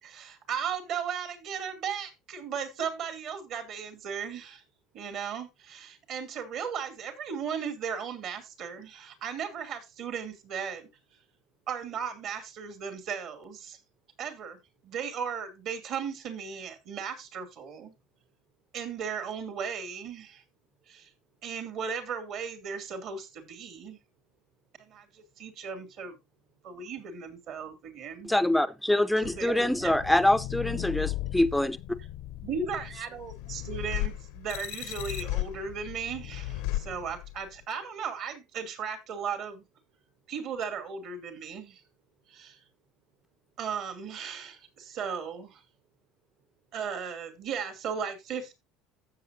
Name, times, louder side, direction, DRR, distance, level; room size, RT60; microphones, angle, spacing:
voice 1, 0.0-4.6 4.9-10.9 11.7-13.8 14.2-14.6 14.8-17.9 18.7-20.4 20.9-21.1 21.4-24.0 24.9-26.2 26.6-28.3 29.2-30.0 32.4-39.6 40.3-41.8 42.3-42.6 43.6-45.6 46.7-48.5, right 6 dB, 60° right, 2.6 m, -36 dB
voice 2, 24.4-24.8 25.3-25.7 26.5-26.9 31.3-31.4 36.8-36.9 40.0-40.1 41.8-42.6 43.1-43.3 44.8-44.9 46.4-46.5, right 4 dB, 80° right, 4.3 m, -73 dB
voice 3, 28.2-31.8, left 1 dB, 5° left, 0.5 m, -25 dB
sound 1, 29.2-37.6, left 15 dB, 80° left, 0.7 m, -36 dB
15.0 x 6.8 x 2.6 m
supercardioid pair, 100°, 0 cm